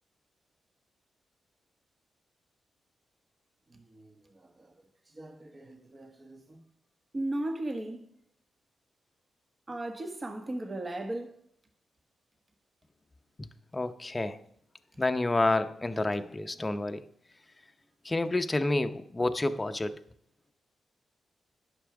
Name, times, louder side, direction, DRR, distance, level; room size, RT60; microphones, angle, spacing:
voice 1, 5.2-6.6 7.1-8.1 9.7-11.3, right 1 dB, 35° right, 1.2 m, -36 dB
voice 2, 13.7-14.4 15.0-17.0 18.0-20.0, left 2 dB, 25° left, 0.7 m, -29 dB
10.0 x 6.1 x 4.8 m
cardioid pair, 65°, 0 cm